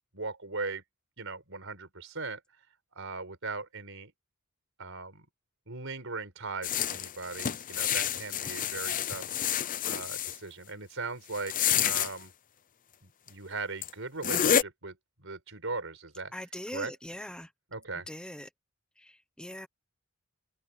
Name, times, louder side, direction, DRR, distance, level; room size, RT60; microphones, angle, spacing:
voice 1, 0.1-0.8 1.2-2.4 3.0-4.1 4.8-5.3 5.7-9.3 9.8-11.5 11.8-12.3 13.0-16.3 16.7-16.9 17.7-18.1, right 3 dB, 65° right, 5.7 m, -39 dB
sound 1, 6.6-10.4 11.3-12.1 13.3-13.4 13.8-13.9 14.2-14.6, left 9 dB, 40° left, 0.6 m, -29 dB
voice 2, 16.3-17.5 18.1-18.5 19.0-19.7, left 1 dB, 5° left, 0.9 m, -41 dB
open air
head